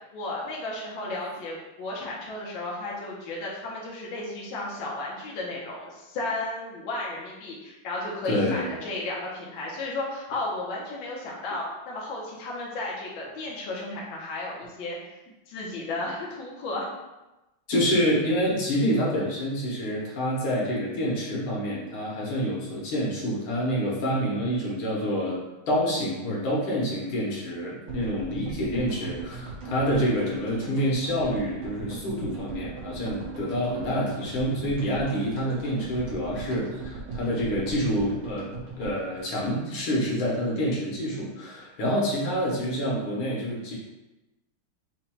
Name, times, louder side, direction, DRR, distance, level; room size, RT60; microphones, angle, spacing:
voice 1, 0.1-15.0 15.5-16.9, left 2 dB, 70° left, -4 dB, 1.5 m, -34 dB
voice 2, 8.2-8.7 17.7-25.4 25.7-38.5 38.8-43.8, equal, 85° left, -4 dB, 2.0 m, -27 dB
sound 1, 27.9-40.1 40.4-40.5 40.6-40.7, right 4 dB, 75° right, 2.1 m, -39 dB
5.2 x 2.3 x 4.4 m, 1.0 s
omnidirectional pair, 2.3 m